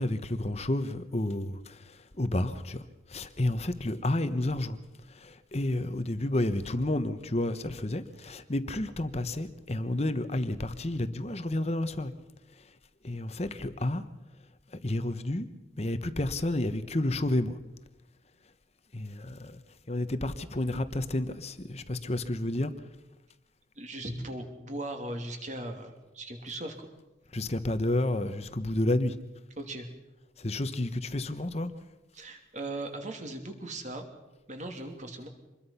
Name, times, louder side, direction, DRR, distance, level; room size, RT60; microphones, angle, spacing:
voice 1, 0.0-2.8 3.1-4.8 5.1-12.1 13.0-14.0 14.8-15.5 15.8-17.6 18.9-19.6 19.9-22.7 27.3-29.1 30.4-31.7, left 1 dB, 35° left, 1.1 m, -30 dB
voice 2, 23.8-26.9 29.6-29.9 32.1-34.0 34.5-35.3, right 1 dB, 40° right, 2.9 m, -38 dB
26.0 x 21.5 x 5.7 m
head